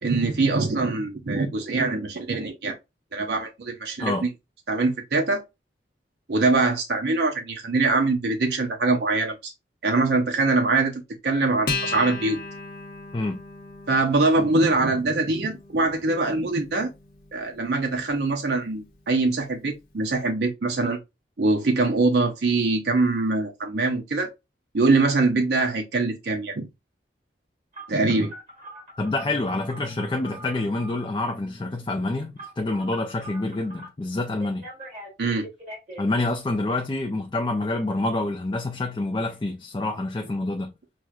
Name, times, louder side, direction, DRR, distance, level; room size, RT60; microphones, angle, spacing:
voice 1, 0.0-2.8 3.1-4.1 4.7-5.4 6.3-9.5 9.8-12.4 13.9-16.9 17.3-21.0 21.4-24.3 24.7-26.7 27.9-28.3 35.2-35.5, right 3 dB, 70° right, 0.6 m, -23 dB
Acoustic guitar, 11.7-18.5, left 3 dB, 55° left, 0.8 m, -36 dB
Telephone, 27.7-31.1 32.4-33.9 34.4-36.0, right 1 dB, 35° right, 2.0 m, -42 dB
voice 2, 29.0-34.7 36.0-40.7, left 2 dB, 25° left, 0.3 m, -27 dB
6.0 x 2.1 x 2.3 m
head